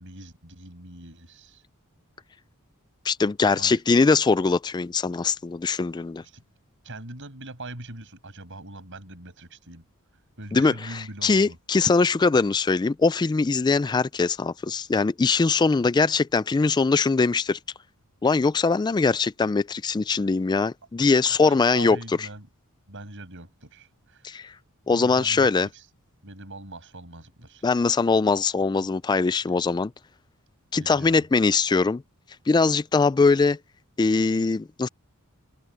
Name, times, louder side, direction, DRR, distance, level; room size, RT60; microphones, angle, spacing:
voice 1, 0.0-1.6 3.5-3.8 6.2-6.4 6.8-9.8 10.4-11.6 21.2-22.5 22.9-24.4 24.9-25.9 26.2-27.7 30.8-31.2, right 2 dB, 60° right, 6.1 m, -42 dB
voice 2, 3.0-6.2 10.5-17.6 18.2-22.3 24.2-24.5 24.9-25.7 27.6-29.9 30.7-32.0 32.5-33.6 34.0-34.9, left 4 dB, 20° left, 0.3 m, -22 dB
head